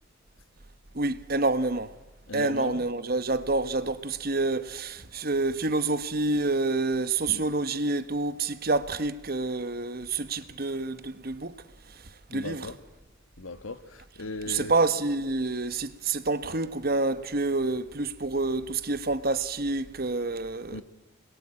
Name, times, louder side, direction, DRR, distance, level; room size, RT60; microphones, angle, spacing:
voice 1, 0.9-1.9 2.3-11.5 12.3-12.7 14.5-20.8, right 3 dB, 45° right, 1.1 m, -28 dB
voice 2, 2.3-2.8 7.3-7.4 12.3-12.8 13.4-14.7 20.7-20.8, left 3 dB, 70° left, 1.5 m, -38 dB
28.0 x 21.5 x 8.8 m
head